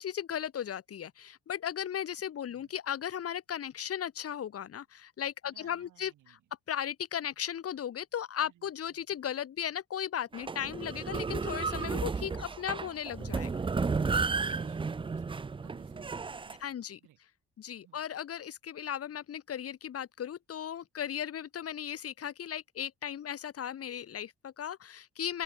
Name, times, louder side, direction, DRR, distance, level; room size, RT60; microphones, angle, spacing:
voice 1, 0.0-6.4 6.7-13.5 16.6-17.0 17.6-25.4, left 9 dB, 50° left, 1.2 m, -36 dB
voice 2, 5.4-6.4 8.4-8.7 13.6-17.2 17.8-18.0, right 13 dB, 80° right, 7.0 m, -60 dB
sound 1, 10.3-16.6, right 4 dB, 15° right, 0.5 m, -33 dB
open air
cardioid pair, 90°, 30 cm